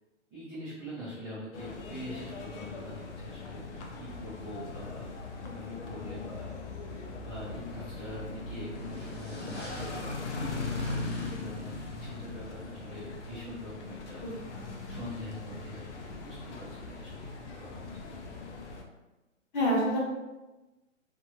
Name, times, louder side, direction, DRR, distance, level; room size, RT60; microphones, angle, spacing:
voice 1, 0.3-3.6 4.0-5.1 5.4-6.5 7.2-10.1 10.4-14.2 14.9-17.8, equal, 10° right, -16 dB, 0.5 m, -44 dB
sound 1, 1.5-18.8, left 3 dB, 65° left, 0.6 m, -40 dB
sound 2, 8.7-14.7, equal, 10° left, 1.0 m, -48 dB
voice 2, 14.2-15.0 19.5-20.0, equal, 40° left, -4 dB, 1.0 m, -30 dB
2.7 x 2.5 x 2.8 m, 1.1 s
hypercardioid pair, 150°, 39 cm